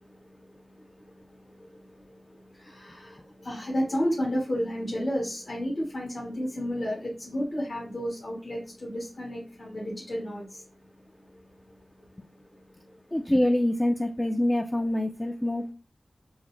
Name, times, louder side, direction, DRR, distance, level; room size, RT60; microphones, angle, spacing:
voice 1, 0.0-13.1, equal, 75° left, 1.3 m, -33 dB
voice 2, 13.1-15.7, left 1 dB, 20° left, 0.3 m, -25 dB
3.8 x 2.0 x 3.1 m
cardioid pair, 50°, 0 cm